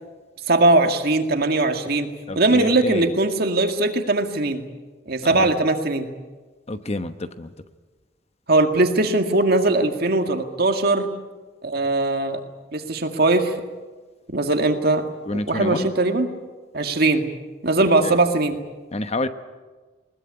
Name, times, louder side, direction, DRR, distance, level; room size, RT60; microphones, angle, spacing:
voice 1, 0.5-4.6 5.1-6.1 8.5-11.1 11.6-12.4 12.7-13.5 14.3-15.1 15.3-16.3 16.7-17.3 17.6-18.6, right 2 dB, 55° right, 6 dB, 2.0 m, -20 dB
voice 2, 2.3-3.1 5.2-5.5 6.7-7.5 15.3-15.8 18.0-18.2 18.9-19.3, left 2 dB, 35° left, 10 dB, 1.0 m, -28 dB
21.0 x 20.0 x 9.7 m, 1.3 s
head